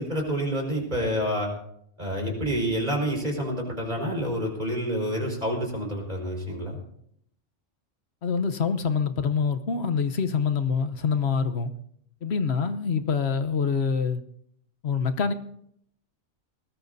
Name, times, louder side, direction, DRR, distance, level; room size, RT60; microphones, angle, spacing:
voice 1, 0.0-1.5 2.0-6.8, equal, 35° right, 4.9 m, -28 dB
voice 2, 8.2-11.7 12.2-14.2 14.8-15.3, left 6 dB, 55° left, 1.2 m, -25 dB
20.0 x 19.5 x 2.7 m
omnidirectional pair, 1.4 m